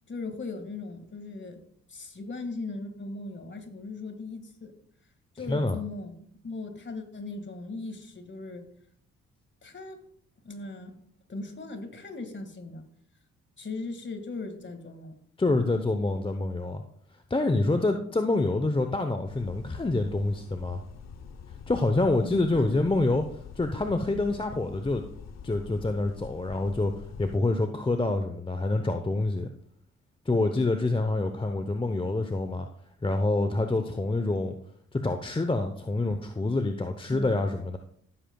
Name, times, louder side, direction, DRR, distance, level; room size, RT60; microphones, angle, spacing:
voice 1, 0.1-1.6 1.9-4.7 5.4-6.2 6.4-8.7 9.6-10.0 10.4-11.0 11.3-12.8 13.6-15.2 22.2-22.8 37.1-37.4, left 3 dB, 40° left, 7 dB, 2.0 m, -38 dB
voice 2, 5.5-5.8 15.4-16.8 17.3-20.8 21.7-23.2 23.6-25.0 25.4-26.9 27.2-29.5 30.3-32.7 33.0-34.6 34.9-37.8, left 2 dB, 15° left, 6 dB, 0.9 m, -26 dB
sound 1, 19.2-27.4, left 6 dB, 60° left, 0.9 m, -45 dB
15.5 x 7.6 x 2.3 m, 0.62 s
supercardioid pair, 55°, 30 cm